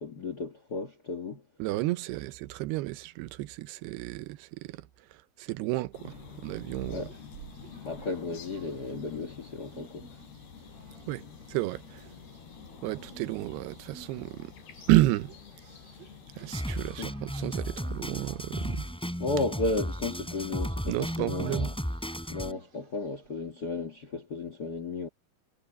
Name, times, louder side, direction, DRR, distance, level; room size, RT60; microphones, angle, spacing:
voice 1, 0.0-1.4 6.8-7.1 7.8-10.1 16.8-17.1 19.2-21.7 22.3-25.1, left 3 dB, 70° left, 0.9 m, -34 dB
voice 2, 1.6-4.9 5.1-7.1 11.1-11.2 11.5-12.1 12.8-14.5 14.9-15.3 16.4-18.9 20.9-21.7, right 18 dB, 90° right, 2.9 m, -31 dB
sound 1, 5.9-16.6, left 6 dB, 85° left, 5.0 m, -48 dB
sound 2, 6.9-23.6, right 3 dB, 60° right, 6.3 m, -55 dB
Drum kit, 16.5-22.5, equal, ahead, 4.8 m, -34 dB
omnidirectional pair, 4.6 m